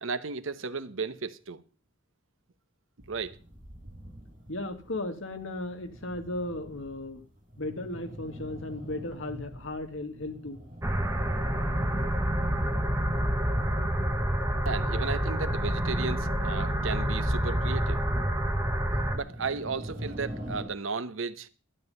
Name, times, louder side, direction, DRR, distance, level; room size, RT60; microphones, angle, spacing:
voice 1, 0.0-1.6 3.1-3.4 14.6-18.0 18.9-21.5, right 4 dB, 75° right, 0.9 m, -34 dB
sound 1, 3.0-20.6, equal, 35° right, 5.4 m, -45 dB
voice 2, 4.5-7.2 7.6-10.6, left 2 dB, 70° left, 1.8 m, -36 dB
sound 2, 10.8-19.2, equal, 15° right, 1.1 m, -28 dB
12.0 x 9.6 x 5.3 m
head